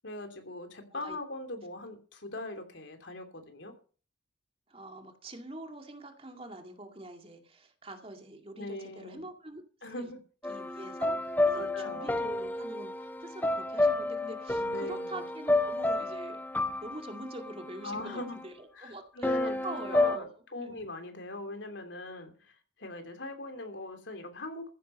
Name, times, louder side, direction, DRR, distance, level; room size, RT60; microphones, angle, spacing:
voice 1, 0.0-3.7 8.5-9.2 9.8-10.2 11.5-12.1 14.6-15.3 17.8-18.4 18.7-24.7, left 2 dB, 85° left, 6 dB, 3.0 m, -41 dB
voice 2, 4.7-9.6 10.0-10.1 10.5-16.4 16.8-20.3 20.6-20.8, right 2 dB, 30° right, 5 dB, 2.2 m, -45 dB
sound 1, 10.4-18.4 19.2-20.2, left 2 dB, 10° left, 0.6 m, -30 dB
14.5 x 10.0 x 5.5 m, 0.40 s
head